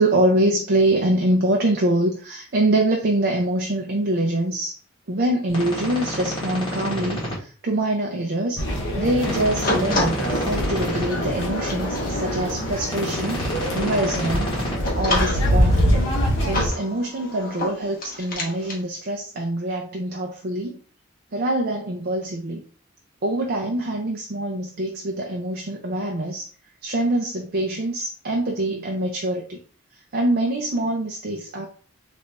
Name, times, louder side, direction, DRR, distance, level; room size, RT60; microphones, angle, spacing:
voice 1, 0.0-4.8 5.1-13.4 13.7-16.0 16.4-20.8 21.3-22.6 23.2-26.5 26.8-29.6 30.1-31.7, right 1 dB, 50° right, 1 dB, 0.6 m, -24 dB
sound 1, 5.5-7.3 9.2-11.0 12.9-14.7, equal, 25° left, 1.5 m, -29 dB
sound 2, 8.6-16.7, equal, 60° left, 1.0 m, -24 dB
sound 3, 9.6-18.8, left 1 dB, 45° left, 1.1 m, -30 dB
4.0 x 2.6 x 3.3 m, 0.40 s
head